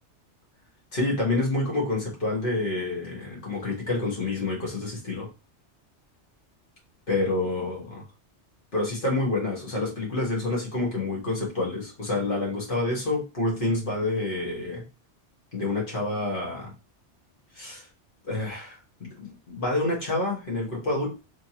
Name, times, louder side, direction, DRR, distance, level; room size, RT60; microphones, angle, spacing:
voice 1, 0.9-5.3 7.1-8.0 8.7-14.8 15.5-16.7 17.5-17.9 18.2-21.1, left 2 dB, 50° left, -4 dB, 1.5 m, -28 dB
3.3 x 2.9 x 2.8 m, 0.31 s
omnidirectional pair, 1.2 m